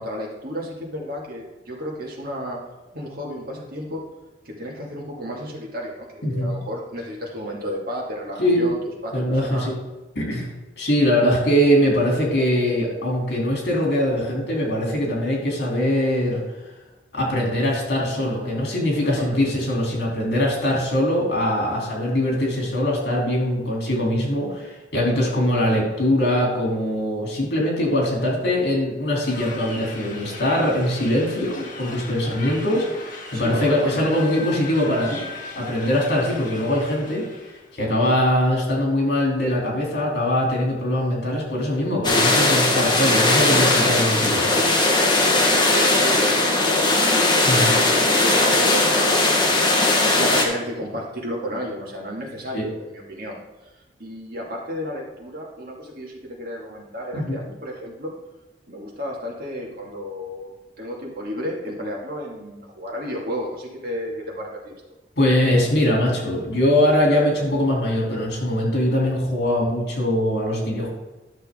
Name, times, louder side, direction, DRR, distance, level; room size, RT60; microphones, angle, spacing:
voice 1, 0.0-2.6 2.9-4.0 4.4-8.8 9.0-9.7 18.4-18.6 19.2-19.4 25.1-25.4 33.3-34.3 42.7-43.1 45.2-58.1 58.7-60.5 60.8-64.8, equal, 60° right, -2 dB, 2.3 m, -32 dB
voice 2, 9.1-9.8 10.1-10.5 10.8-16.4 17.1-32.9 33.3-35.2 35.6-37.2 37.7-44.5 47.5-47.7 52.5-52.6 57.1-57.4 65.2-70.9, left 1 dB, 70° left, -2 dB, 3.1 m, -22 dB
sound 1, 29.3-37.7, left 3 dB, 50° left, 1.7 m, -37 dB
sound 2, 42.0-50.5, left 2 dB, 25° left, 1.4 m, -18 dB
11.5 x 6.6 x 3.7 m, 1.1 s
head